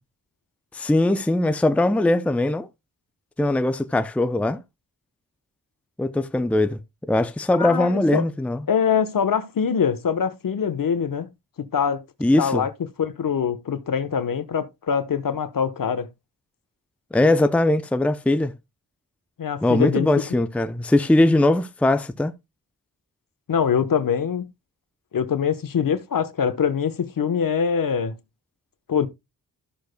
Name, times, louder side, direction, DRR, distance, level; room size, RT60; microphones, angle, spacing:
voice 1, 0.7-2.7 3.4-4.6 6.0-6.8 7.1-8.6 12.2-12.7 17.1-18.5 19.6-22.3, left 1 dB, 5° left, 0.6 m, -20 dB
voice 2, 7.6-8.2 8.7-11.3 11.6-12.0 12.4-12.7 13.0-16.1 19.4-20.1 23.5-24.5 25.1-28.1 28.9-29.1, left 7 dB, 60° left, 1.2 m, -23 dB
13.0 x 6.6 x 2.3 m
cardioid pair, 70°, 38 cm